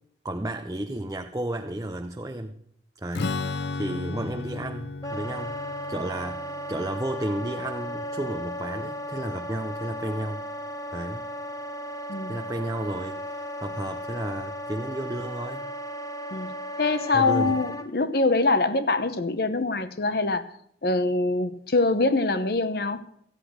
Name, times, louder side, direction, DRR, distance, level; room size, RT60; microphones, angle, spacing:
voice 1, 0.2-2.6 3.0-10.4 10.9-11.3 12.3-15.7 17.1-17.6, right 1 dB, 20° right, 0.6 m, -33 dB
Strum, 3.1-8.8, left 3 dB, 75° left, 0.5 m, -35 dB
Wind instrument woodwind instrument, 5.0-17.9, equal, 20° left, 0.9 m, -35 dB
voice 2, 16.3-20.5 20.8-23.0, left 3 dB, 60° left, 0.9 m, -24 dB
14.0 x 9.9 x 6.2 m
head